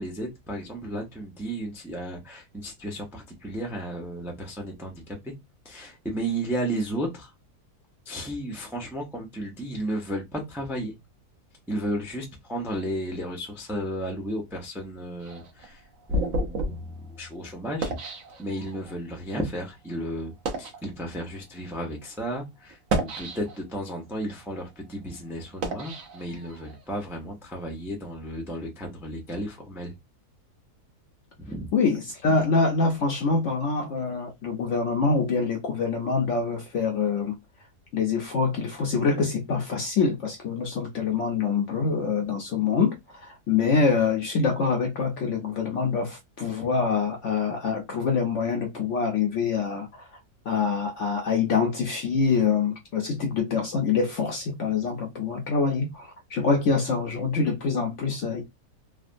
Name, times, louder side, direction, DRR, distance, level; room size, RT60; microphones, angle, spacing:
voice 1, 0.0-5.3 5.6-7.3 8.1-10.9 11.7-15.8 16.1-17.9 18.4-29.9 31.4-31.7, right 1 dB, 5° right, 0.3 m, -33 dB
sound 1, 15.2-18.9 19.6-19.8 20.3-20.8 21.6-21.8 22.7-23.8 24.3-26.8, right 1 dB, 60° right, 1.0 m, -32 dB
voice 2, 31.7-37.3 37.9-42.9 43.2-50.0 50.5-58.4, left 5 dB, 65° left, 0.7 m, -25 dB
3.3 x 2.2 x 2.5 m
omnidirectional pair, 1.7 m